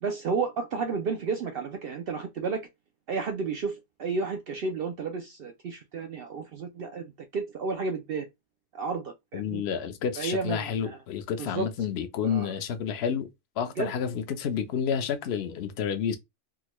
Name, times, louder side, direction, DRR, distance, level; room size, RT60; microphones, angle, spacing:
voice 1, 0.0-2.7 3.1-8.3 8.7-9.6 10.2-11.0 11.4-11.7 12.2-12.5 13.8-13.9, right 4 dB, 80° right, 0.5 m, -32 dB
voice 2, 9.3-13.3 13.6-16.2, left 7 dB, 60° left, 0.7 m, -30 dB
3.7 x 2.1 x 2.9 m
omnidirectional pair, 1.5 m